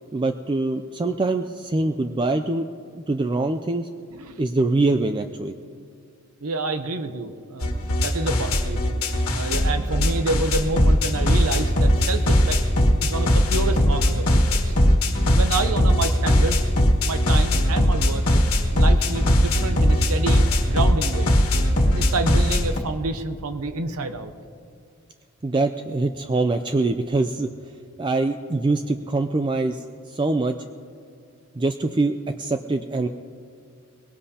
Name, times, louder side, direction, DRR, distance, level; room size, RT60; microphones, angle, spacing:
voice 1, 0.1-2.7 2.9-3.9 4.4-5.5 25.4-27.5 28.0-30.5 31.6-33.1, right 2 dB, 20° right, 7 dB, 0.3 m, -24 dB
voice 2, 6.4-7.8 8.0-12.6 13.0-14.8 15.3-16.7 17.0-18.2 18.7-21.3 21.8-24.3, right 3 dB, 80° right, 8 dB, 0.8 m, -28 dB
sound 1, 7.6-22.8, equal, 70° left, 1.6 m, -20 dB
21.5 x 18.0 x 2.8 m, 2.3 s
head